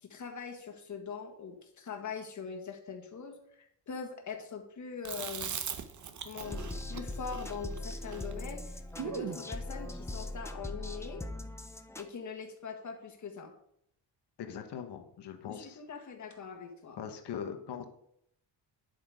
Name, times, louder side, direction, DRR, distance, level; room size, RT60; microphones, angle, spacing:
voice 1, 0.0-5.6 6.2-11.3 12.0-13.5 15.5-17.0, left 6 dB, 45° left, 4 dB, 1.7 m, -42 dB
Chewing mastication, 5.0-9.4, right 7 dB, 45° right, 0.9 m, -40 dB
sound 1, 6.4-12.1, left 1 dB, 5° left, 0.4 m, -40 dB
voice 2, 14.4-15.8 17.0-17.9, left 8 dB, 75° left, 6 dB, 1.2 m, -41 dB
10.0 x 7.9 x 4.9 m, 0.72 s
wide cardioid pair, 180°, 41 cm